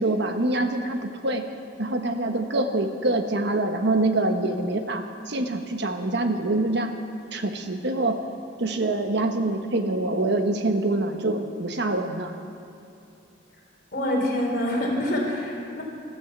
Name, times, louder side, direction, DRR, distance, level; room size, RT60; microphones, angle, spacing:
voice 1, 0.0-1.4 1.8-6.9 7.3-8.2 8.6-12.3, right 2 dB, 65° right, 6 dB, 1.3 m, -25 dB
voice 2, 13.9-15.8, left 1 dB, 55° left, -2 dB, 4.0 m, -26 dB
14.0 x 13.5 x 7.2 m, 2.7 s
head